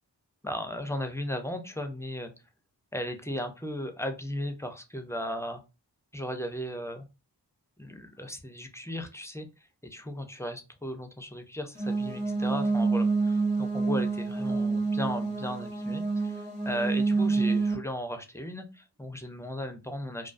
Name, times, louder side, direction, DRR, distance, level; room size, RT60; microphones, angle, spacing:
voice 1, 0.4-2.3 2.9-5.6 6.1-7.1 7.8-9.5 9.8-20.3, equal, 5° left, 6 dB, 0.3 m, -36 dB
sound 1, 11.8-17.7, right 3 dB, 15° right, 0.7 m, -27 dB
2.3 x 2.2 x 2.4 m, 0.28 s
wide cardioid pair, 60°, 41 cm